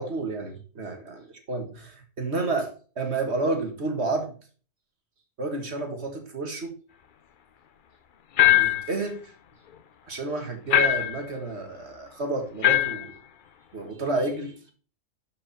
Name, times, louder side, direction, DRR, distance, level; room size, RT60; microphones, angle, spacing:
voice 1, 0.0-4.4 5.4-6.7 8.5-9.3 10.1-13.1 13.7-14.7, right 2 dB, 55° right, 4 dB, 2.2 m, -30 dB
sound 1, 8.4-8.9 10.7-11.2 12.6-13.1, left 12 dB, 50° left, 0.7 m, -20 dB
11.5 x 5.5 x 4.3 m, 0.40 s
omnidirectional pair, 1.4 m